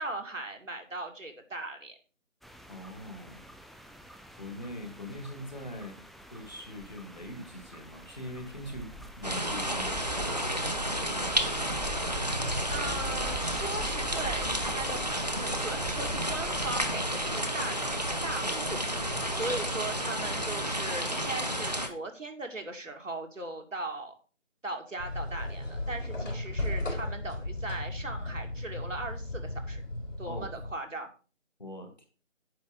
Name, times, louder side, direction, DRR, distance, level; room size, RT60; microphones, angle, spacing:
voice 1, 0.0-2.0 12.7-24.1 24.6-29.8 30.2-31.1, right 2 dB, 75° right, 4 dB, 2.3 m, -38 dB
sound 1, 2.4-21.9, right 1 dB, ahead, 0.4 m, -46 dB
voice 2, 2.7-3.4 4.3-6.0 6.3-11.8 30.2-30.5 31.6-32.1, equal, 35° left, 5 dB, 1.6 m, -43 dB
sound 2, 9.2-21.9, equal, 35° right, 0.8 m, -31 dB
sound 3, 25.0-30.7, left 1 dB, 70° left, 3.7 m, -35 dB
9.4 x 6.3 x 3.9 m, 0.37 s
figure-of-eight pair, 170°, 38 cm